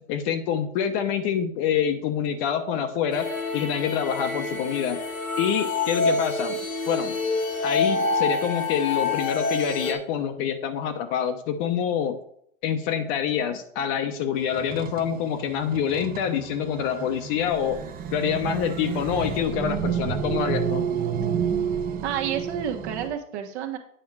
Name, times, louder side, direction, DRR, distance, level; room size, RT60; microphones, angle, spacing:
voice 1, 0.1-5.0 5.4-6.6 6.9-7.1 7.6-12.2 12.6-17.8 18.1-20.9, left 8 dB, 40° left, 7 dB, 0.9 m, -26 dB
sound 1, 3.1-9.9, left 3 dB, 85° left, 1.8 m, -27 dB
sound 2, 14.4-23.1, right 7 dB, 20° right, 0.8 m, -30 dB
voice 2, 22.0-23.8, right 9 dB, 55° right, 4 dB, 1.3 m, -30 dB
8.9 x 5.6 x 4.7 m, 0.69 s
hypercardioid pair, 120°, 40 cm